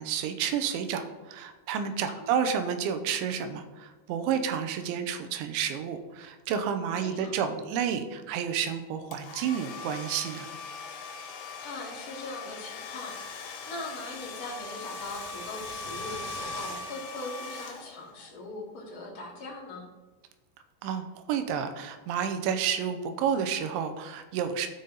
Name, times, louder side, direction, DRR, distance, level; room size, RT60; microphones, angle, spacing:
voice 1, 0.0-10.5 20.8-24.7, right 8 dB, 80° right, 8 dB, 2.8 m, -30 dB
voice 2, 7.0-7.4 11.6-19.8, left 2 dB, 70° left, -4 dB, 0.9 m, -41 dB
Domestic sounds home sounds, 9.1-18.3, left 3 dB, 90° left, 4.1 m, -40 dB
15.5 x 5.6 x 4.0 m, 1.2 s
omnidirectional pair, 5.9 m